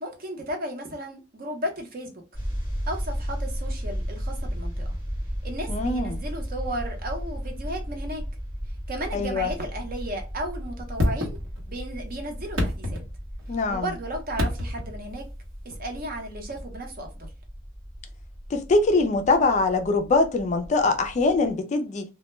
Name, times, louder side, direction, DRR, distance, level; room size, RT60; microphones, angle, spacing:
voice 1, 0.0-2.2 2.9-5.0 5.4-8.2 8.9-11.4 11.7-13.0 13.7-15.2 15.6-17.3, right 1 dB, 45° right, 0.7 m, -34 dB
sound 1, 2.3-21.5, equal, 5° right, 0.9 m, -35 dB
voice 2, 5.7-6.2 9.1-9.5 13.5-13.8 18.5-22.0, left 3 dB, 35° left, 0.3 m, -23 dB
sound 2, 11.0-11.9 12.4-13.6 14.3-15.0 16.6-16.7, left 1 dB, 80° right, 0.9 m, -28 dB
2.2 x 2.1 x 3.0 m
head